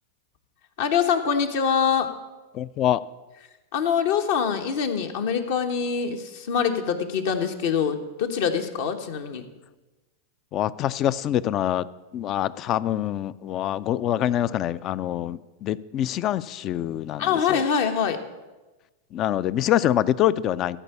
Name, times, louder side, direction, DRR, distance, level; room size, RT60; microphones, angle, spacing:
voice 1, 0.8-2.1 3.7-9.4 17.2-18.2, left 7 dB, 65° left, 5 dB, 1.2 m, -24 dB
voice 2, 2.5-3.0 10.5-11.9 12.1-17.6 19.1-20.8, left 12 dB, 40° left, 18 dB, 0.4 m, -25 dB
14.0 x 4.6 x 8.2 m, 1.1 s
hypercardioid pair, 100°, 0 cm